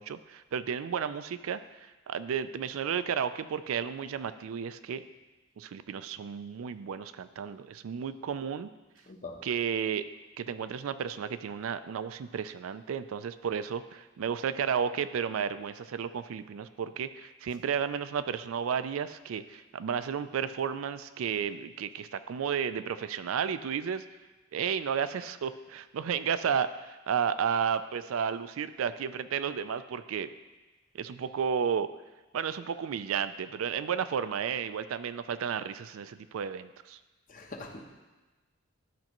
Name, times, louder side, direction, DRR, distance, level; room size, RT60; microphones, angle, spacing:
voice 1, 0.0-5.0 5.6-8.7 9.4-10.0 10.4-24.0 24.5-30.3 30.9-31.9 32.3-37.0, right 7 dB, 75° right, 12 dB, 0.4 m, -32 dB
voice 2, 9.1-9.4 37.3-37.8, left 3 dB, 40° left, 2 dB, 0.8 m, -42 dB
12.0 x 5.3 x 3.0 m, 1.2 s
head